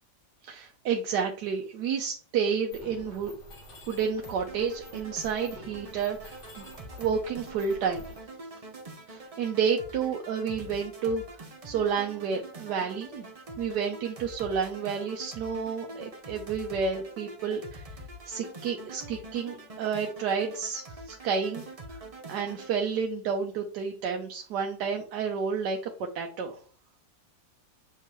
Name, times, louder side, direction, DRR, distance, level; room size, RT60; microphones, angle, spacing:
voice 1, 0.4-3.3 3.9-6.7 7.0-8.0 9.1-11.2 11.6-13.3 13.6-17.9 18.3-21.6 21.9-26.6, right 6 dB, 90° right, 3 dB, 1.3 m, -30 dB
Mechanisms, 2.7-8.2, left 1 dB, 85° left, 2.6 m, -49 dB
sound 1, 4.2-22.7, right 2 dB, 35° right, 0.6 m, -45 dB
7.4 x 4.5 x 3.0 m, 0.43 s
omnidirectional pair, 1.7 m